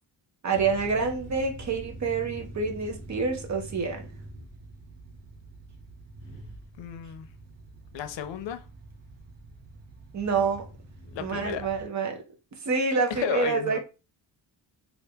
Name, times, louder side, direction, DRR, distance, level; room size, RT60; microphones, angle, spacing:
voice 1, 0.4-4.1 10.1-10.7 11.2-12.2 12.6-13.8, right 4 dB, 40° right, 0.6 m, -27 dB
sound 1, 0.5-11.8, right 1 dB, 75° right, 1.0 m, -45 dB
voice 2, 6.8-7.3 7.9-8.7 11.1-11.7 13.1-13.8, left 10 dB, 80° left, 0.5 m, -33 dB
2.8 x 2.5 x 3.3 m
wide cardioid pair, 160°, 43 cm